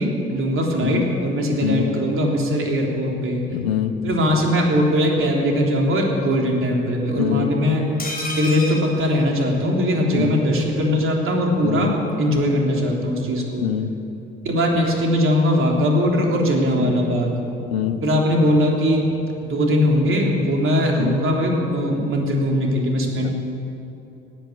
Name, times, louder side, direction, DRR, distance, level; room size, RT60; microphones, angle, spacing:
voice 1, 0.0-3.4 4.0-7.9 8.3-13.7 14.4-17.4 18.0-19.1 19.4-23.3, equal, 45° right, 0 dB, 3.5 m, -20 dB
voice 2, 1.5-1.9 3.5-3.9 7.2-7.5 10.1-10.4 11.6-11.9 13.6-13.9 16.7-16.9 17.6-18.0 21.0-21.2 23.1-23.3, left 10 dB, 80° left, 8 dB, 0.9 m, -24 dB
sound 1, 8.0-10.0 10.3-10.4 10.6-10.7, left 1 dB, 30° left, 4.5 m, -31 dB
18.0 x 9.1 x 8.7 m, 2.9 s
figure-of-eight pair, 55°, 30 cm